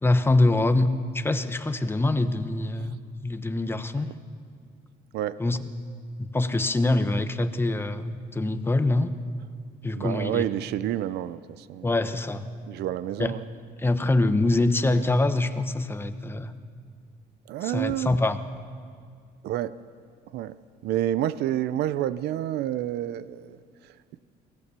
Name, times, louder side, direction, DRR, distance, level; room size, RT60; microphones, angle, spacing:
voice 1, 0.0-4.1 5.4-5.6 6.2-9.1 9.8-10.4 11.8-12.5 13.2-13.3 13.8-16.5 17.6-18.4, left 2 dB, 15° left, 9 dB, 1.0 m, -24 dB
voice 2, 10.0-11.4 11.7-11.9 12.7-13.4 17.5-18.1 19.4-19.7 20.3-20.5 20.8-23.6, right 12 dB, 75° right, 16 dB, 0.6 m, -28 dB
22.5 x 17.0 x 6.9 m, 2.1 s
cardioid pair, 110°, 17 cm